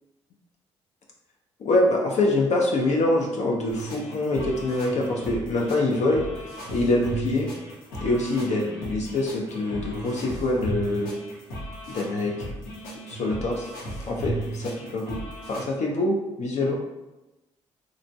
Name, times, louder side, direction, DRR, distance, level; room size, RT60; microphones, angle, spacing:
voice 1, 1.6-6.3 6.7-7.5 8.0-11.1 11.9-12.3 13.1-13.7 14.1-15.2 15.5-16.7, left 2 dB, 55° left, -1 dB, 0.5 m, -25 dB
sound 1, 3.7-15.6, right 1 dB, 75° left, 0.8 m, -36 dB
2.9 x 2.5 x 2.2 m, 1.0 s
hypercardioid pair, 50°, 14 cm